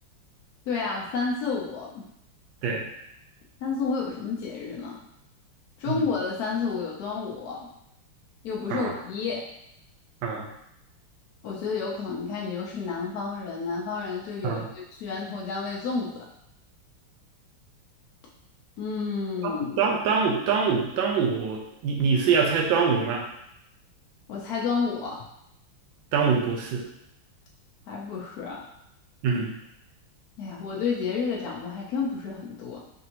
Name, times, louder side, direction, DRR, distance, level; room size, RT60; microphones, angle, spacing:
voice 1, 0.7-2.0 3.6-5.0 5.8-7.6 8.4-9.4 11.4-14.6 15.0-16.3 18.8-19.9 24.3-25.2 27.9-28.6 30.4-32.8, left 5 dB, 80° left, -3 dB, 0.8 m, -30 dB
voice 2, 19.4-23.2 26.1-26.8 29.2-29.5, right 5 dB, 70° right, 0 dB, 1.4 m, -24 dB
5.4 x 2.6 x 2.9 m, 0.78 s
omnidirectional pair, 2.4 m